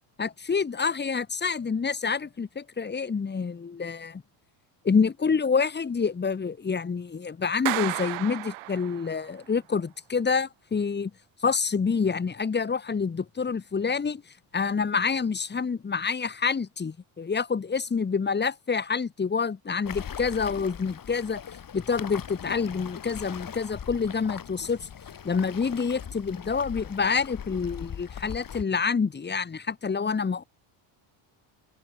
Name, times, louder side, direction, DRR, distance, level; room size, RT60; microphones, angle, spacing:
voice 1, 0.2-4.2 4.8-11.1 11.4-14.2 14.5-21.4 21.7-24.9 25.2-30.4, left 5 dB, 20° left, 1.4 m, -27 dB
Clapping, 7.7-9.3, right 20 dB, 80° right, 2.8 m, -32 dB
Waves surf, 19.8-28.6, left 8 dB, 40° left, 6.4 m, -40 dB
open air
cardioid pair, 100°, 49 cm